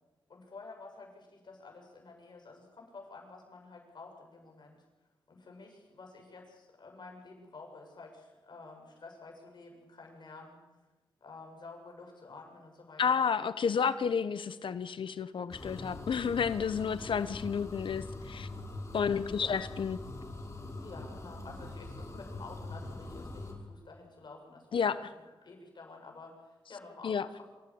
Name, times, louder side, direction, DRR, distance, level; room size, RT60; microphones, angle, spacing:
voice 1, 0.3-4.8 5.3-10.6 11.2-13.2 19.4-19.5 20.8-24.8 25.4-27.4, left 3 dB, 60° left, 1 dB, 7.3 m, -50 dB
voice 2, 13.0-18.5 18.9-20.0 24.7-25.0 27.0-27.3, left 6 dB, 75° left, 13 dB, 1.1 m, -31 dB
sound 1, 15.5-23.5, left 2 dB, 35° left, 5.0 m, -43 dB
27.0 x 15.5 x 8.8 m, 1.1 s
wide cardioid pair, 105°, 9 cm